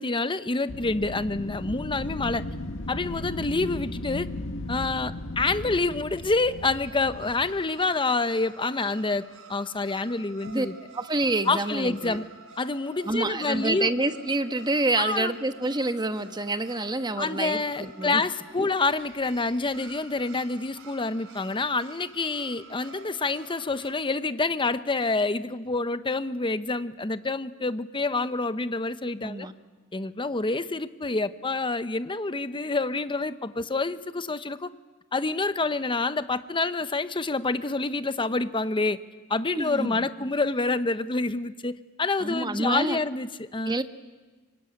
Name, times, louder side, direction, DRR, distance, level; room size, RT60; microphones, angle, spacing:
voice 1, 0.0-2.4 2.9-4.3 4.7-9.2 9.5-10.7 11.5-12.3 12.6-13.9 15.0-15.3 17.2-29.5 29.9-34.7 35.1-39.0 39.3-43.8, left 3 dB, 25° left, 13 dB, 0.9 m, -27 dB
Wind, 0.7-7.6, left 2 dB, 65° left, 1.8 m, -36 dB
sound 1, 5.9-23.9, right 4 dB, 65° right, 4.0 m, -49 dB
voice 2, 10.9-12.2 13.0-18.2 18.6-18.7 29.2-29.5 39.5-40.1 42.2-43.0 43.6-43.8, right 2 dB, 20° right, 9 dB, 1.2 m, -28 dB
24.5 x 24.0 x 9.9 m, 1.3 s
head